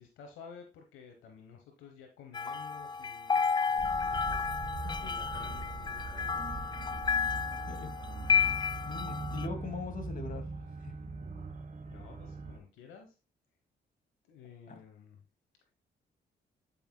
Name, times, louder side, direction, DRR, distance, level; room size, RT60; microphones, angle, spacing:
voice 1, 0.0-4.3 5.0-6.9 11.9-13.2 14.3-15.2, left 6 dB, 85° left, 4 dB, 1.1 m, -53 dB
sound 1, 2.3-9.5, left 6 dB, 25° left, 0.4 m, -32 dB
sound 2, 3.8-12.6, right 3 dB, 40° right, 1.2 m, -41 dB
voice 2, 7.7-8.0 8.9-10.5 10.8-10.9 14.7-14.8, left 4 dB, 45° left, 4 dB, 2.3 m, -41 dB
10.5 x 5.5 x 2.2 m, 0.31 s
supercardioid pair, 55°, 20 cm